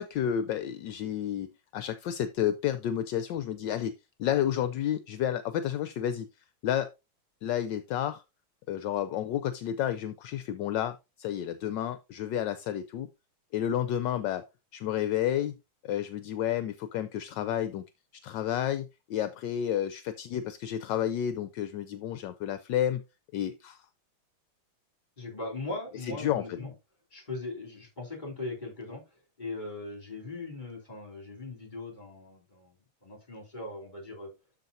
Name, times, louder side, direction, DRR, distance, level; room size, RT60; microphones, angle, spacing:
voice 1, 0.0-3.9 4.2-6.3 6.6-6.9 7.4-8.2 8.7-13.1 13.5-14.4 14.7-15.6 15.8-17.8 18.2-23.0 23.3-23.8 26.1-26.6, left 10 dB, 75° left, 1.2 m, -31 dB
voice 2, 25.2-26.7 27.1-34.3, left 2 dB, 20° left, 3.3 m, -40 dB
12.5 x 4.6 x 2.7 m
omnidirectional pair, 2.2 m